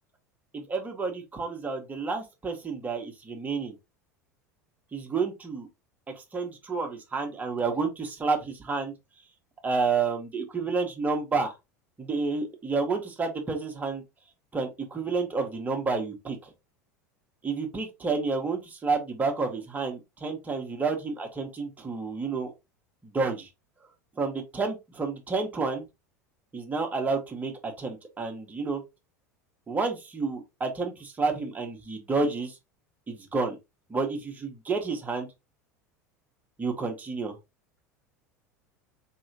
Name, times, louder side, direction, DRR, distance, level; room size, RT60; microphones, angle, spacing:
voice 1, 0.5-3.7 4.9-5.7 6.2-8.9 9.6-11.5 12.0-14.0 14.5-16.5 17.4-22.5 23.0-23.5 24.2-25.8 26.5-28.8 29.7-32.6 33.1-33.6 33.9-35.3 36.6-37.4, right 4 dB, 20° right, 1.3 m, -30 dB
4.3 x 3.4 x 2.8 m
figure-of-eight pair, 75°, 9 cm